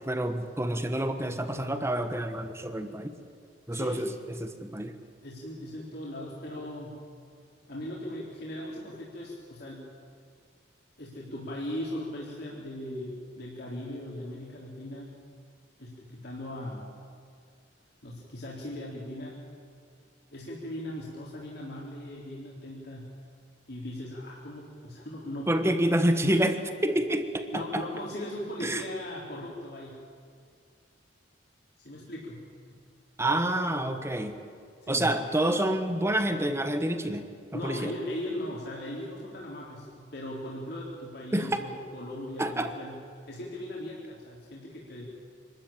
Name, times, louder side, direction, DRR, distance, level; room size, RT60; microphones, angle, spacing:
voice 1, 0.0-3.1 3.7-4.1 4.4-4.9 25.5-27.8 28.6-28.8 33.2-34.3 34.9-37.9 41.3-41.6 42.4-42.7, right 1 dB, 15° right, 8 dB, 1.3 m, -28 dB
voice 2, 3.7-4.1 5.2-7.0 7.7-9.9 11.0-15.1 15.8-16.9 18.0-19.4 20.3-23.1 23.7-25.5 27.5-30.0 31.8-32.4 34.8-35.1 37.5-43.0 43.3-45.1, left 1 dB, 60° left, -5 dB, 3.7 m, -38 dB
25.5 x 13.5 x 8.9 m, 2.2 s
head